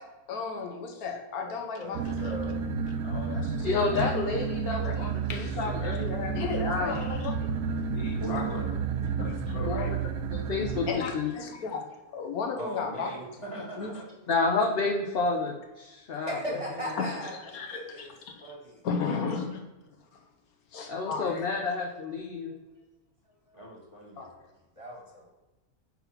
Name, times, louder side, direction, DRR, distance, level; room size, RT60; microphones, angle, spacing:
voice 1, 0.0-2.4 3.0-4.0 4.8-4.9 5.3-5.8 6.3-8.5 9.2-9.9 10.9-13.1 13.8-14.0 16.5-16.6 17.0-18.5 18.8-19.7 20.1-20.2 20.7-21.4 24.2-24.4, left 5 dB, 80° left, 4 dB, 1.3 m, -35 dB
voice 2, 1.8-2.6 16.2-18.1 18.4-18.8 22.3-22.6 24.8-25.3, equal, 25° right, -2 dB, 1.4 m, -38 dB
sound 1, 1.9-10.9, right 6 dB, 85° right, 1.1 m, -31 dB
voice 3, 3.6-7.0 9.5-10.0 10.3-11.3 14.3-16.4 16.8-17.1 20.9-22.5, left 4 dB, 50° left, 1 dB, 0.8 m, -30 dB
voice 4, 8.2-8.7 12.6-14.0 19.1-19.4 23.5-24.3, right 1 dB, 20° left, -4 dB, 1.9 m, -40 dB
5.9 x 3.8 x 5.7 m, 1.1 s
omnidirectional pair, 1.6 m